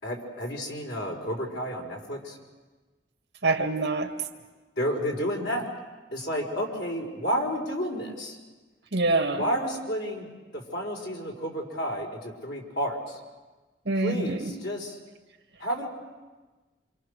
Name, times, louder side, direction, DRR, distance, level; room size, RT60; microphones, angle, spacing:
voice 1, 0.0-2.4 4.8-5.7 6.1-8.4 9.4-10.3 10.5-13.2 13.9-15.0 15.6-15.9, equal, 70° left, 0 dB, 4.8 m, -31 dB
voice 2, 3.4-4.1 8.9-9.4 13.9-14.5, right 3 dB, 65° right, 5 dB, 2.2 m, -25 dB
27.5 x 27.0 x 6.7 m, 1.2 s
head